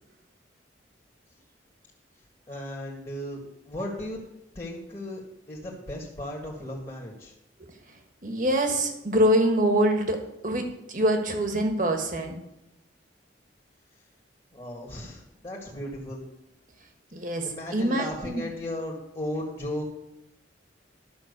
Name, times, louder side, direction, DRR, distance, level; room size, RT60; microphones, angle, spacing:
voice 1, 2.5-4.2 4.6-5.2 5.5-7.3 14.5-16.2 17.4-19.9, left 1 dB, 25° left, -2 dB, 1.7 m, -36 dB
voice 2, 8.2-10.2 10.4-12.4 17.1-17.5 17.7-18.4, equal, 45° right, 4 dB, 1.5 m, -24 dB
11.5 x 5.9 x 6.7 m, 0.87 s
head